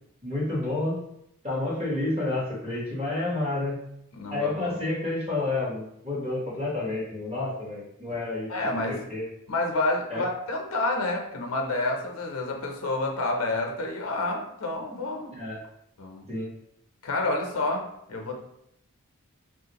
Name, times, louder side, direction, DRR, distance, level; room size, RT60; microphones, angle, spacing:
voice 1, 0.2-1.0 1.4-3.8 4.3-9.3 10.1-10.2 15.3-15.6 16.3-16.5, left 2 dB, 30° right, -5 dB, 1.0 m, -30 dB
voice 2, 4.1-4.7 8.5-9.1 9.5-15.4 16.0-16.3 17.0-18.3, left 2 dB, 75° left, 1 dB, 0.6 m, -29 dB
3.3 x 2.4 x 2.8 m, 0.76 s
head